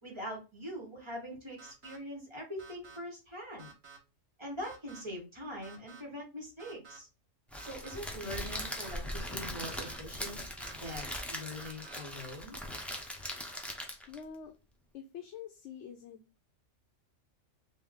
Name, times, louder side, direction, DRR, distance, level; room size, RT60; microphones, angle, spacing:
voice 1, 0.0-3.7 4.4-7.1 7.6-10.4 10.8-12.6, equal, 25° right, -2 dB, 1.2 m, -43 dB
sound 1, 1.6-2.0 2.6-3.0 3.6-4.0 4.6-5.0 5.6-6.0 6.6-7.0 7.6-8.0 8.6-8.9 9.6-10.0 10.6-11.0 11.6-12.0, right 6 dB, 55° right, 1.3 m, -52 dB
Crackle, 7.5-14.2, equal, ahead, 0.3 m, -40 dB
voice 2, 14.1-14.5 14.9-16.4, left 7 dB, 75° left, 4 dB, 0.9 m, -46 dB
3.4 x 2.6 x 3.6 m, 0.29 s
omnidirectional pair, 1.3 m